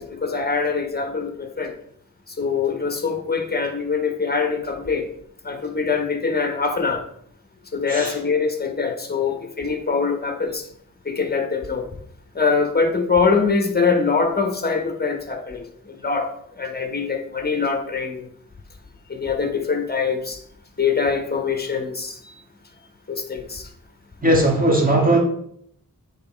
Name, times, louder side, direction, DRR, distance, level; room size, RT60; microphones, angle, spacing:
voice 1, 0.0-1.7 2.4-5.1 5.4-7.0 7.7-10.6 11.0-11.9 12.3-16.3 16.6-18.2 19.1-20.4 20.8-22.1 23.1-23.6, left 5 dB, 25° left, 5 dB, 1.2 m, -23 dB
voice 2, 24.2-25.2, right 1 dB, 25° right, -1 dB, 2.1 m, -18 dB
8.3 x 3.9 x 4.6 m, 0.67 s
wide cardioid pair, 70°, 36 cm